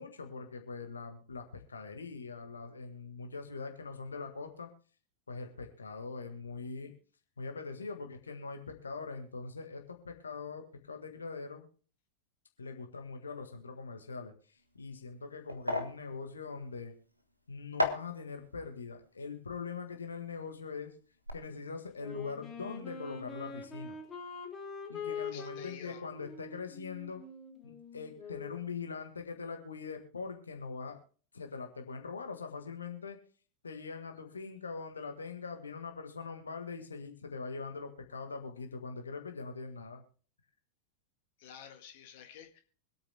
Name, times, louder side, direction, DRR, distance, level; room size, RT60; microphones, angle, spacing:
voice 1, 0.0-4.7 5.3-6.9 7.4-11.7 12.6-16.9 17.5-20.9 21.3-24.0 24.9-27.2 27.6-31.0 31.3-33.2 33.6-40.0, left 4 dB, 75° left, 5 dB, 1.6 m, -42 dB
sound 1, 14.6-20.8 21.0-21.3, left 1 dB, 90° right, 1.5 m, -38 dB
Wind instrument woodwind instrument, 22.0-28.7, left 5 dB, 20° left, 3.4 m, -44 dB
voice 2, 25.2-26.0 41.4-42.6, left 9 dB, 50° left, 6 dB, 1.8 m, -51 dB
25.0 x 8.8 x 2.2 m, 0.41 s
figure-of-eight pair, 90°, 0 cm